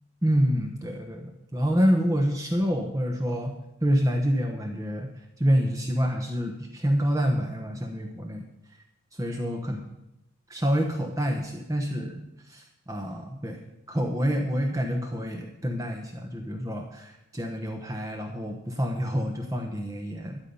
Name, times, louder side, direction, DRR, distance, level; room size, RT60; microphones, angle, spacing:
voice 1, 0.2-3.5 3.8-5.1 5.4-8.4 9.2-9.8 10.5-13.6 13.9-20.4, equal, 15° right, 3 dB, 1.0 m, -27 dB
12.5 x 10.0 x 5.5 m, 0.87 s
head